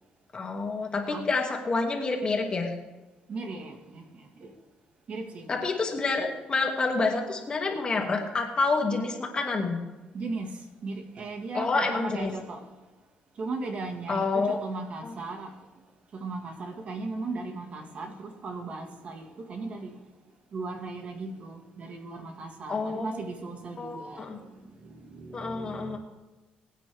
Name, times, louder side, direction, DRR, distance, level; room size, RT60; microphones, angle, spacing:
voice 1, 0.3-2.7 5.5-9.8 11.5-12.3 14.1-14.6 15.0-15.1 22.7-23.2 23.8-24.4 25.3-26.0, left 3 dB, 30° left, 2.3 m, -28 dB
voice 2, 3.3-4.5 5.1-5.6 10.1-12.7 13.4-15.6 16.1-20.0 20.5-26.0, right 3 dB, 45° right, 1.8 m, -37 dB
21.5 x 9.1 x 3.5 m
cardioid pair, 115°, 3 cm